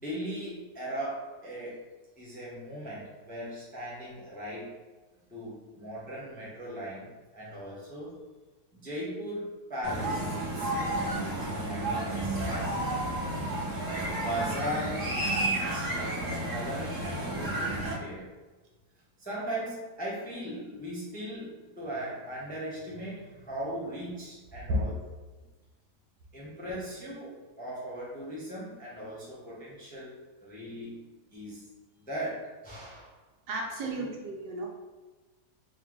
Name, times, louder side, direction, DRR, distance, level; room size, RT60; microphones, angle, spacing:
voice 1, 0.0-1.8 2.2-4.7 5.3-8.2 8.7-12.4 12.7-13.0 13.8-17.7 18.0-18.2 19.2-24.9 26.3-30.1 30.4-31.6 32.1-33.1 33.8-34.0, equal, 10° left, -6 dB, 0.5 m, -38 dB
sound 1, 9.8-17.9, right 1 dB, 15° right, 1.3 m, -31 dB
voice 2, 33.5-34.7, equal, 80° right, 0 dB, 1.3 m, -32 dB
3.1 x 3.0 x 3.6 m, 1.2 s
omnidirectional pair, 1.8 m